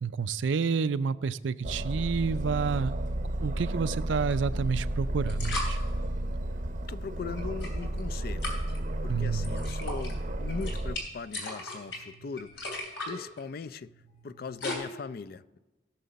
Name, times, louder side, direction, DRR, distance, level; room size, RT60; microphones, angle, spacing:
voice 1, 0.0-2.9 3.4-5.8 9.1-9.5, right 5 dB, 85° right, 0.4 m, -29 dB
Aircraft, 1.6-11.0, right 1 dB, 45° right, 0.7 m, -32 dB
sound 1, 4.3-4.4 5.2-5.8 7.4-8.0 8.4-8.8 9.4-10.1 10.5-14.8, left 2 dB, 75° left, 3.2 m, -38 dB
voice 2, 6.8-8.5 9.0-13.9 14.2-15.6, left 5 dB, 55° left, 0.4 m, -40 dB
16.5 x 6.7 x 4.1 m
head